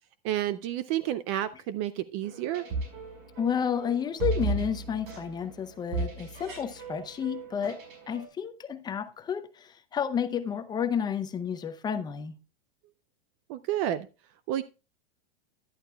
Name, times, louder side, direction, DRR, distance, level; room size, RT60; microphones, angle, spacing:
voice 1, 0.2-2.6 13.5-14.1 14.5-14.6, right 12 dB, 30° right, 0.4 m, -30 dB
sound 1, 2.2-8.3, right 3 dB, 55° right, 5.0 m, -36 dB
voice 2, 3.4-12.4, left 7 dB, 15° left, 0.6 m, -31 dB
11.0 x 11.0 x 2.3 m
supercardioid pair, 145°, 30 cm